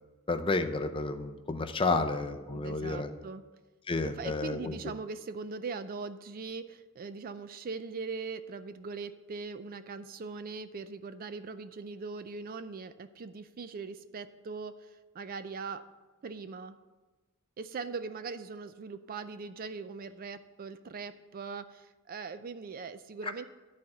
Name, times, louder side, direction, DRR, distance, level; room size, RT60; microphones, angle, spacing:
voice 1, 0.3-3.1 3.9-4.8, left 3 dB, 25° left, 8 dB, 0.6 m, -31 dB
voice 2, 2.5-3.4 4.0-15.9 16.2-16.8 17.6-23.5, right 4 dB, 40° right, 11 dB, 0.4 m, -40 dB
11.0 x 4.3 x 7.7 m, 1.2 s
head